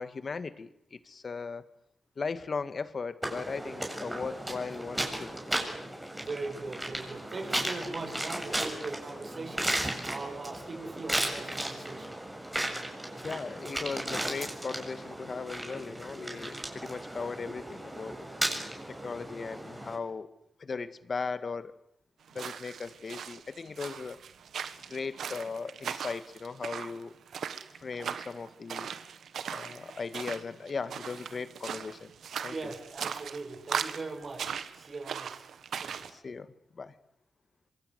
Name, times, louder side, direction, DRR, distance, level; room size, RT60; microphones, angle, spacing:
voice 1, 0.0-1.6 2.2-5.3 13.2-18.2 18.9-20.3 20.6-21.7 22.3-24.2 24.9-27.1 27.8-28.9 29.5-32.1 32.4-32.7 36.1-36.9, left 4 dB, 50° left, 12 dB, 1.9 m, -38 dB
sound 1, 3.2-20.0, right 1 dB, 10° right, 7.3 m, -35 dB
voice 2, 6.2-9.8 10.0-12.1 32.5-35.4 35.8-36.1, right 3 dB, 50° right, 5 dB, 7.5 m, -40 dB
sound 2, 22.3-36.1, right 7 dB, 85° right, 1.5 m, -39 dB
26.5 x 24.0 x 8.3 m, 0.75 s
cardioid pair, 75°, 0 cm